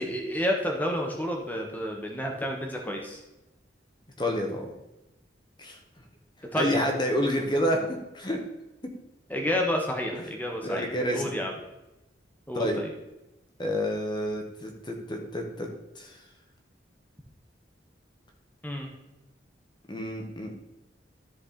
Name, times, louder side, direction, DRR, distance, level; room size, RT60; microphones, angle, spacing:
voice 1, 0.0-3.2 6.5-6.8 9.3-11.5 12.5-12.9 18.6-18.9, equal, 10° left, 1 dB, 1.5 m, -30 dB
voice 2, 4.2-4.7 5.6-5.8 6.5-8.4 10.1-10.2 10.6-11.3 12.5-12.8 13.6-15.7 15.9-16.2 19.9-20.6, equal, 25° left, 2 dB, 1.5 m, -29 dB
13.5 x 4.7 x 4.4 m, 0.96 s
head